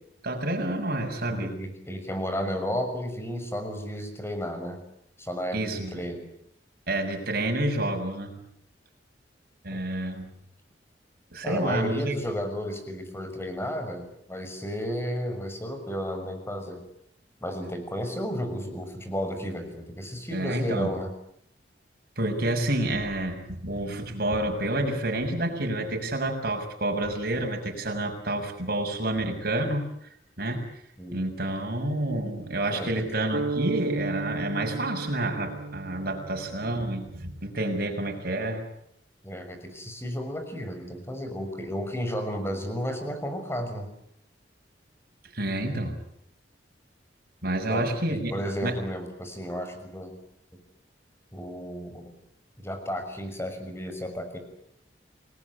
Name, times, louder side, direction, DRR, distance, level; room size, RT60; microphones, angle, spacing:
voice 1, 0.2-1.6 5.5-5.9 6.9-8.3 9.6-10.3 11.3-12.1 20.3-20.9 22.2-29.9 30.4-30.7 31.1-38.6 45.3-45.9 47.4-48.3 48.6-48.7, right 1 dB, 60° right, 3 dB, 6.5 m, -29 dB
voice 2, 1.3-4.8 5.2-6.3 9.7-9.8 11.4-16.8 17.4-21.1 31.0-31.2 32.7-33.0 39.2-43.9 47.7-50.2 51.3-52.1 52.6-54.4, equal, 15° left, 6 dB, 6.2 m, -33 dB
sound 1, 33.3-37.3, right 3 dB, 85° right, 1.2 m, -34 dB
29.0 x 20.5 x 9.8 m, 0.75 s
head